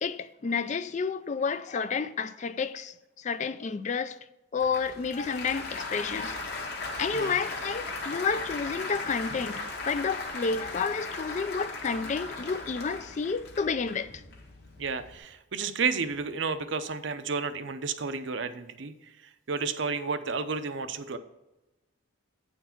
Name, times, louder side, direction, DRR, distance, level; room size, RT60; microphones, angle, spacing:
voice 1, 0.0-4.2 4.5-6.4 7.0-14.1, left 5 dB, 35° left, 0.3 m, -30 dB
Applause, 4.6-15.2, left 3 dB, 50° left, 1.3 m, -38 dB
voice 2, 14.8-21.2, right 5 dB, 60° right, 0.6 m, -32 dB
8.9 x 4.6 x 5.7 m
head